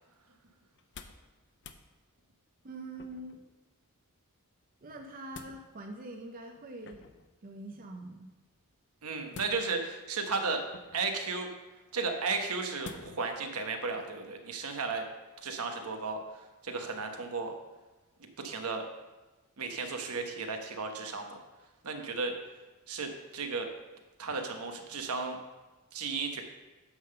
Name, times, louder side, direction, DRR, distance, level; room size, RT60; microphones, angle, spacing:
sound 1, 0.7-1.3 1.6-1.8 3.0-3.4 4.9-5.6 6.8-7.3 9.3-9.9 10.7-11.2 12.8-13.3 13.8-13.9, left 4 dB, 55° left, 0.5 m, -49 dB
voice 1, 2.6-3.4 4.8-7.0 7.4-8.3, right 2 dB, 40° right, 2 dB, 0.6 m, -44 dB
voice 2, 9.0-10.6 10.9-11.5 11.9-15.0 15.4-17.5 18.4-18.9 19.6-21.4 21.8-22.4 22.9-23.7 24.2-25.4 25.9-26.4, right 4 dB, 80° right, 4 dB, 1.0 m, -34 dB
9.4 x 3.8 x 6.6 m, 1.1 s
head